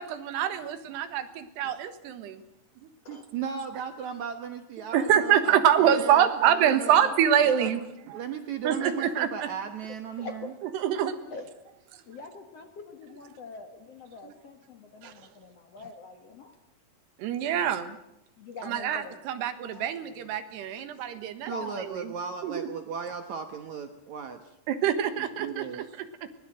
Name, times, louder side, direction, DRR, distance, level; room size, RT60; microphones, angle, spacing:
voice 1, 0.0-2.4 2.8-3.2 4.9-7.8 8.1-8.2 8.6-9.5 10.7-11.2 14.2-14.3 15.0-15.1 17.2-18.0 18.6-22.1 22.4-22.6 24.7-25.9 26.2-26.3, right 9 dB, 85° right, 10 dB, 3.5 m, -25 dB
voice 2, 3.3-7.0 7.6-7.7 8.1-10.5 21.5-24.4 25.2-25.9, right 7 dB, 65° right, 7 dB, 1.9 m, -36 dB
voice 3, 10.2-10.5 11.3-11.5 12.1-16.5 18.4-19.2 19.7-19.9 21.5-21.8, left 3 dB, 50° left, 6 dB, 2.0 m, -43 dB
23.0 x 20.5 x 7.7 m, 0.82 s
omnidirectional pair, 4.7 m